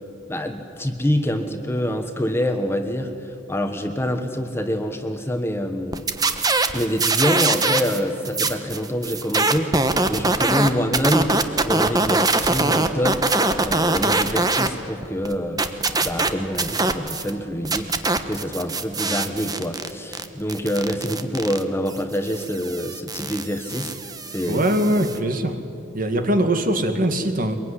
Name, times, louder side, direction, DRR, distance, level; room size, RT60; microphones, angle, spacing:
voice 1, 0.3-6.0 6.7-13.3 13.6-15.6 16.0-24.0 24.3-24.6, equal, 15° left, 6 dB, 1.3 m, -26 dB
sound 1, 5.9-14.7 15.0-17.3 17.6-25.2, right 3 dB, 20° right, 1.1 m, -23 dB
voice 2, 24.5-25.6 25.9-27.6, right 1 dB, 45° right, 7 dB, 2.0 m, -21 dB
23.5 x 22.0 x 9.9 m, 2.5 s
head